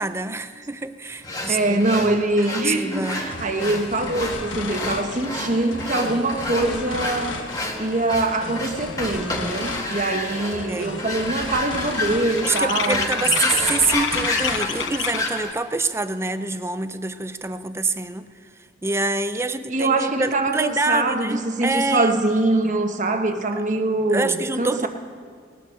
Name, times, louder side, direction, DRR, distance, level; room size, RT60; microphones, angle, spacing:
voice 1, 0.0-2.2 2.6-3.2 10.1-10.2 10.7-10.9 12.4-18.5 18.8-22.2 24.1-24.9, right 3 dB, 15° right, 11 dB, 0.5 m, -26 dB
sound 1, 1.2-15.5, left 2 dB, 20° left, 1.7 m, -30 dB
voice 2, 1.5-7.4 7.8-13.1 19.7-24.9, right 2 dB, 40° right, 5 dB, 1.1 m, -23 dB
sound 2, 3.1-15.3, left 3 dB, 80° left, 1.2 m, -35 dB
sound 3, 10.3-10.6 10.9-15.5, left 10 dB, 65° left, 0.4 m, -30 dB
19.0 x 9.4 x 6.4 m, 2.2 s
head